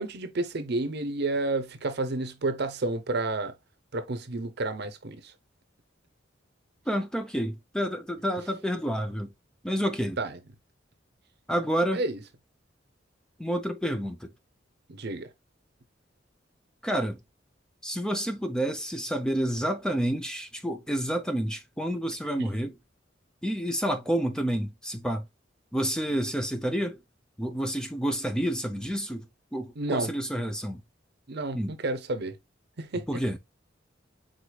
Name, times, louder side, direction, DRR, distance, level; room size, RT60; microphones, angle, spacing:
voice 1, 0.0-3.5 3.9-5.2 10.2-10.3 11.9-12.2 14.9-15.3 22.4-22.5 29.8-30.1 31.3-32.3 32.8-33.0, right 2 dB, 60° right, 0.7 m, -30 dB
voice 2, 6.9-9.3 9.6-10.2 11.5-12.0 13.4-14.3 16.8-17.2 17.8-22.8 23.4-25.2 25.7-27.0 27.4-29.3 29.5-30.8 31.5-31.7 33.1-33.4, equal, 5° left, 0.5 m, -29 dB
4.8 x 3.9 x 2.3 m
head